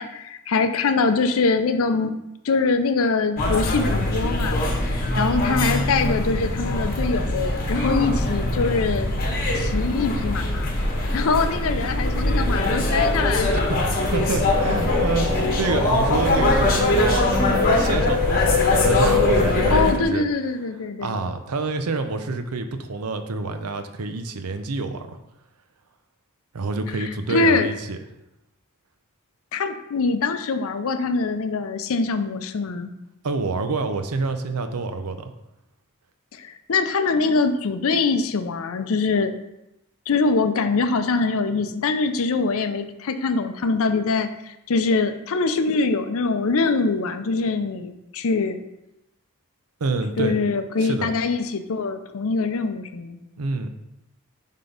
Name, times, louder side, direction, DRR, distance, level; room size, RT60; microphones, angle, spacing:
voice 1, 0.0-2.1 2.4-4.6 4.9-9.1 9.5-10.7 11.1-13.5 19.7-21.2 27.0-27.7 29.5-32.9 36.3-39.3 40.1-48.6 50.2-53.2, left 4 dB, 65° left, 9 dB, 0.5 m, -23 dB
sound 1, 3.4-19.9, left 1 dB, 40° left, 1.1 m, -22 dB
voice 2, 13.5-20.2 21.0-25.2 26.5-28.0 33.2-35.3 49.8-50.4 50.8-51.1 53.4-53.7, right 3 dB, 85° right, 8 dB, 0.6 m, -27 dB
sound 2, 14.5-19.7, left 6 dB, ahead, 1.1 m, -25 dB
5.9 x 3.7 x 5.1 m, 0.88 s
head